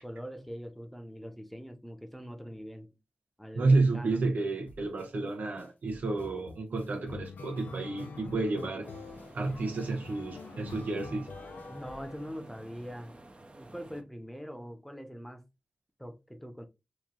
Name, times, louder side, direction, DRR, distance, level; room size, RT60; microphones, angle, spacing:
voice 1, 0.0-3.0 3.4-4.2 11.7-13.2 13.6-15.4 16.0-16.6, equal, 5° left, 0.9 m, -43 dB
voice 2, 3.5-8.9 9.3-11.3, right 3 dB, 75° right, 0.9 m, -30 dB
sound 1, 4.7-5.1 5.6-12.8, left 4 dB, 80° left, 0.5 m, -46 dB
sound 2, 8.8-14.0, right 2 dB, 40° right, 0.8 m, -52 dB
3.1 x 2.5 x 3.7 m
cardioid pair, 40°, 3 cm